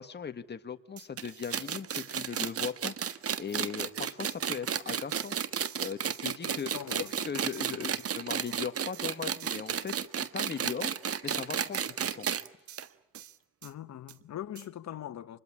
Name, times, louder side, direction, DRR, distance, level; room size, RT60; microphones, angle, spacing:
voice 1, 0.0-5.4 5.8-10.9 11.2-12.3, left 6 dB, 35° left, 1.7 m, -39 dB
sound 1, 1.0-1.1 1.4-1.5 1.9-2.5 3.3-3.4 3.8-3.9 4.2-4.5 5.2-6.2 6.6-6.7 7.0-7.2 7.5-8.1 8.5-8.6 8.9-9.0 9.4-10.0 10.8-10.9 11.3-11.4 11.7-12.0 12.7-13.7 14.1-14.2 14.5-14.7, right 11 dB, 70° right, 1.6 m, -51 dB
sound 2, 1.2-12.5 12.8-12.9 13.1-13.2 14.1-14.2, right 8 dB, 50° right, 1.4 m, -32 dB
voice 2, 6.4-7.3 7.7-7.9 13.6-15.4, left 11 dB, 65° left, 1.7 m, -42 dB
27.0 x 21.0 x 9.8 m
cardioid pair, 90°, 30 cm